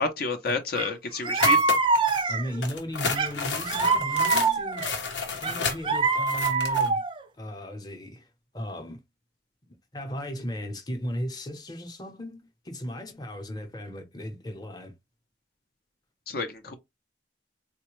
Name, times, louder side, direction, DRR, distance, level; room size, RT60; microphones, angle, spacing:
voice 1, 0.0-1.6 16.3-16.7, left 4 dB, 55° left, 0.6 m, -30 dB
sound 1, 0.8-0.9 1.2-2.6 3.2-4.9 5.4-7.2, right 4 dB, 25° right, 0.3 m, -24 dB
sound 2, 1.4-2.2 2.6-6.9, left 5 dB, 90° left, 0.9 m, -31 dB
voice 2, 2.3-4.9 5.4-7.0 7.4-8.3 8.5-9.0 9.9-14.9, equal, 20° left, 0.8 m, -36 dB
4.1 x 2.2 x 3.0 m
head